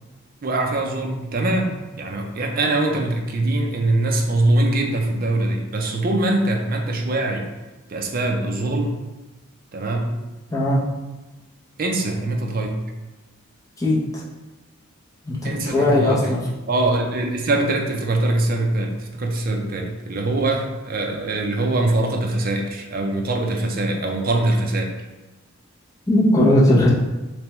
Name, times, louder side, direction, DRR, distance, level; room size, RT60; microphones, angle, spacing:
voice 1, 0.4-7.5 7.9-8.9 9.7-10.1 11.8-12.8 15.4-16.4 16.7-25.0, right 2 dB, 45° right, 2 dB, 0.5 m, -23 dB
voice 2, 13.8-14.2 15.3-16.4 26.1-26.9, left 1 dB, 15° left, -6 dB, 0.7 m, -18 dB
3.3 x 3.3 x 3.0 m, 1.1 s
head